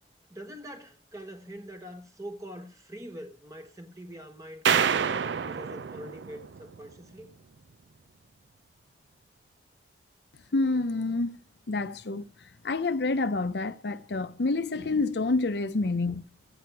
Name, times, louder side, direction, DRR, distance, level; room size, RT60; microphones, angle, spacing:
voice 1, 0.3-7.3 15.8-15.9, equal, 20° right, 1.3 m, -44 dB
sound 1, 4.6-7.0, right 7 dB, 90° right, 0.5 m, -28 dB
voice 2, 10.5-11.3 11.7-12.3 12.6-16.2, left 3 dB, 70° left, 0.6 m, -28 dB
14.0 x 8.6 x 4.7 m
head